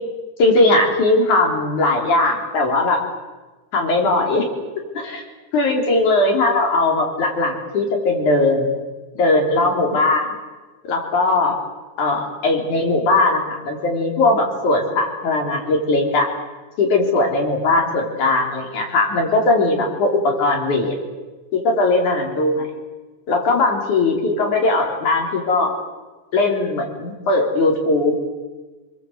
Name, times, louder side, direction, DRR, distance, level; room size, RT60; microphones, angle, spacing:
voice 1, 0.4-3.0 3.7-4.5 5.0-5.2 5.5-8.7 9.2-10.3 10.9-11.5 12.0-16.3 16.8-20.9 21.5-22.7 23.3-25.7 26.3-28.1, left 2 dB, 75° left, 1 dB, 5.3 m, -19 dB
28.0 x 21.5 x 8.2 m, 1.3 s
omnidirectional pair, 3.5 m